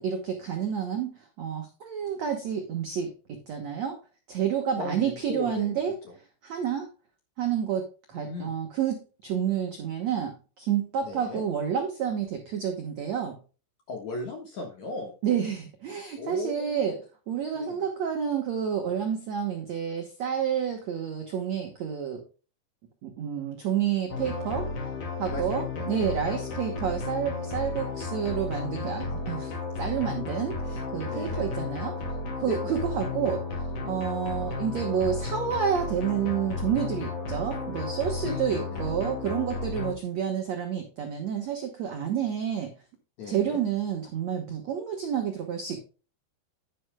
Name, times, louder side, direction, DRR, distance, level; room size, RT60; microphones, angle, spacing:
voice 1, 0.0-4.0 4.3-5.9 6.4-6.9 7.4-13.4 15.2-16.9 17.3-22.2 23.0-24.7 25.2-32.0 32.4-42.7 43.3-45.8, right 8 dB, 75° right, 3 dB, 1.6 m, -29 dB
voice 2, 4.8-5.8 8.1-8.5 11.0-11.4 13.9-15.1 16.2-17.0 17.5-17.8 25.3-26.4 31.1-31.5 32.5-32.9 38.2-38.9 43.2-43.6, left 3 dB, 60° left, 3 dB, 2.1 m, -37 dB
sound 1, 24.1-39.9, left 3 dB, 40° left, 2.5 m, -33 dB
11.5 x 10.0 x 2.2 m, 0.35 s
omnidirectional pair, 5.0 m